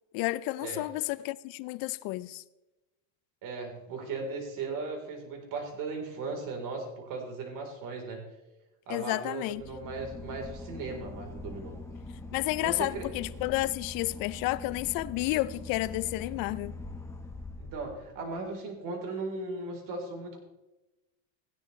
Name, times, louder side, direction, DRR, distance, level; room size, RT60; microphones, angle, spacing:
voice 1, 0.1-2.4 8.9-9.6 12.3-16.7, left 19 dB, 55° left, 0.6 m, -31 dB
voice 2, 3.4-8.2 8.9-11.7 12.5-13.1 17.6-20.4, right 3 dB, 50° right, 3.9 m, -37 dB
Boat Water vehicle / Engine, 9.5-18.4, left 2 dB, 5° left, 1.2 m, -43 dB
16.0 x 10.0 x 3.2 m
supercardioid pair, 115°, 41 cm